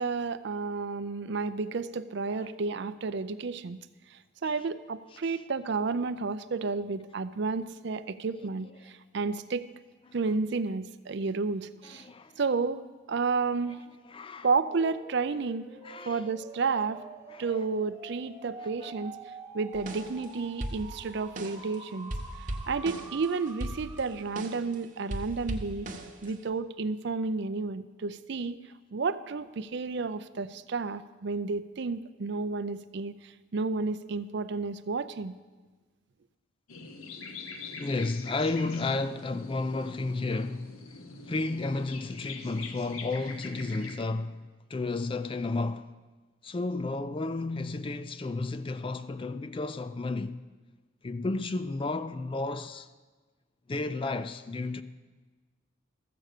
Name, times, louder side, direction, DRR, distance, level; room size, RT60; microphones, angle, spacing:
voice 1, 0.0-3.8 4.1-9.7 10.1-12.1 12.4-12.8 13.1-13.8 14.4-15.7 16.1-17.0 17.4-19.1 19.5-22.1 22.7-25.9 26.2-28.6 28.9-35.4, right 4 dB, 55° right, 0.5 m, -31 dB
voice 2, 11.9-12.4 14.0-14.5 15.8-16.3 17.3-17.5 18.6-18.9 37.8-45.9 46.4-50.4 51.0-52.9 53.7-54.8, left 3 dB, 25° left, 0.3 m, -32 dB
sound 1, 14.7-24.5, right 2 dB, 15° right, 0.9 m, -47 dB
sound 2, 19.7-20.3 20.6-21.7 22.1-24.7 25.1-26.5, right 1 dB, 40° right, 1.0 m, -38 dB
sound 3, 36.7-44.0, left 4 dB, 90° left, 1.0 m, -44 dB
14.0 x 7.7 x 6.6 m
head